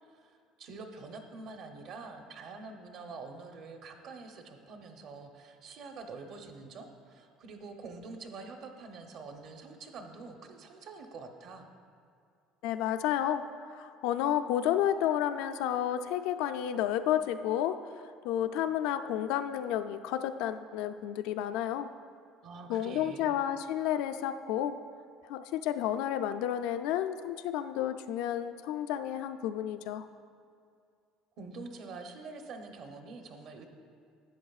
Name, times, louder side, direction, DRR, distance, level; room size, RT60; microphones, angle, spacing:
voice 1, 0.0-11.7 22.4-23.4 31.4-33.7, right 3 dB, 50° right, 5 dB, 0.8 m, -46 dB
voice 2, 12.6-13.4 13.7-17.8 18.2-21.9 22.7-24.8 25.2-30.1, left 11 dB, 75° left, 9 dB, 0.3 m, -31 dB
12.0 x 8.4 x 2.4 m, 2.3 s
cardioid pair, 155°, 0 cm